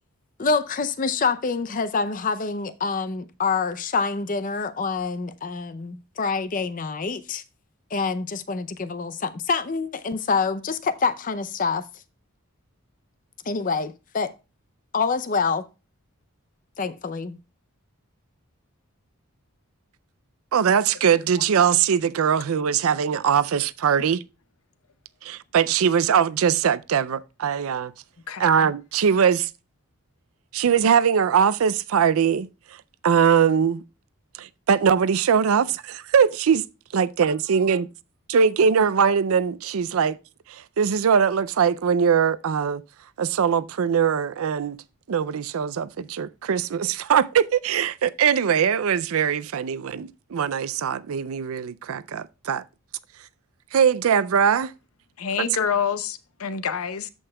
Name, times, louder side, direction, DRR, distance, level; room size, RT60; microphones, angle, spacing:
voice 1, 0.4-7.4 7.9-11.8 13.5-14.3 14.9-15.6 16.8-17.4, left 4 dB, 35° left, 0.5 m, -26 dB
voice 2, 20.5-24.2 25.2-27.9 28.4-29.5 30.5-32.5 33.0-33.8 34.4-36.7 36.9-37.9 38.3-40.2 40.5-42.8 43.2-44.8 45.1-52.6 53.7-54.7 55.4-55.5, right 7 dB, 70° right, 0.4 m, -21 dB
voice 3, 55.2-57.1, left 7 dB, 70° left, 0.7 m, -27 dB
13.5 x 5.4 x 2.2 m
head